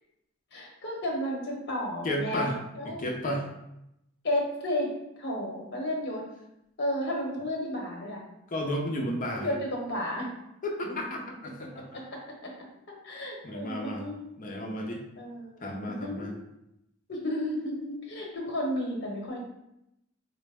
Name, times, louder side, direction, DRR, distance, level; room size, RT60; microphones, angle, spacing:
voice 1, 0.5-3.2 4.2-4.9 5.2-6.2 6.8-8.2 9.3-10.3 10.8-10.9 11.9-12.5 13.0-14.3 15.2-16.3 17.1-19.4, left 1 dB, 60° left, -1 dB, 0.9 m, -33 dB
voice 2, 2.0-2.6 3.0-3.5 8.5-9.5 10.6-11.9 13.4-14.0 14.4-15.0 15.6-16.3, equal, 40° left, 1 dB, 0.5 m, -32 dB
4.1 x 2.0 x 3.3 m, 0.83 s
head